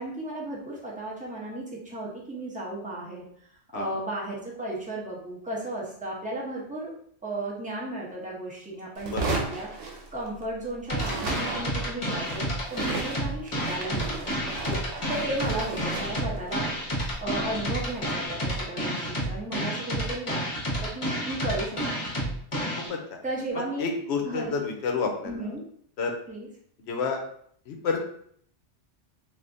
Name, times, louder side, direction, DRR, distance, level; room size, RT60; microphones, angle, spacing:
voice 1, 0.0-3.2 3.7-6.9 7.2-14.4 15.1-20.4 20.8-22.1 23.2-24.0 24.2-24.6 25.2-25.6 26.3-26.5, right 1 dB, 10° right, -5 dB, 0.6 m, -34 dB
sound 1, 9.0-10.6 10.9-18.1, right 3 dB, 85° right, 1.0 m, -36 dB
sound 2, 10.9-22.9, equal, 30° left, 0.8 m, -30 dB
voice 2, 23.8-25.4 26.0-26.1 26.9-27.2 27.7-28.0, left 5 dB, 70° left, 2 dB, 0.8 m, -29 dB
3.3 x 2.5 x 2.5 m, 0.64 s
omnidirectional pair, 1.2 m